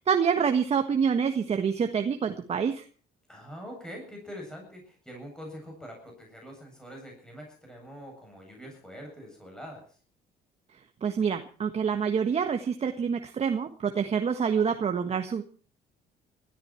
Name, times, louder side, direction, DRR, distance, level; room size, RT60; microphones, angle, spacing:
voice 1, 0.0-2.8 11.0-15.4, right 6 dB, 40° right, 6 dB, 1.5 m, -27 dB
voice 2, 3.3-10.0, equal, 5° left, 0 dB, 7.9 m, -44 dB
21.0 x 13.5 x 4.5 m, 0.40 s
cardioid pair, 110°, 17 cm